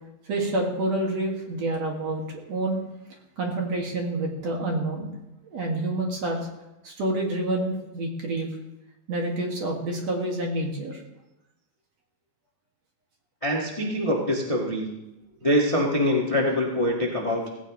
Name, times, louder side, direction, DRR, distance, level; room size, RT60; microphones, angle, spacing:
voice 1, 0.3-2.2 2.5-2.8 3.4-5.1 5.4-6.5 6.8-8.5 9.1-11.0, right 2 dB, 50° right, 0 dB, 2.8 m, -28 dB
voice 2, 13.4-14.9 15.4-17.5, equal, 35° left, -2 dB, 0.5 m, -24 dB
17.5 x 16.5 x 3.1 m, 0.97 s
omnidirectional pair, 4.3 m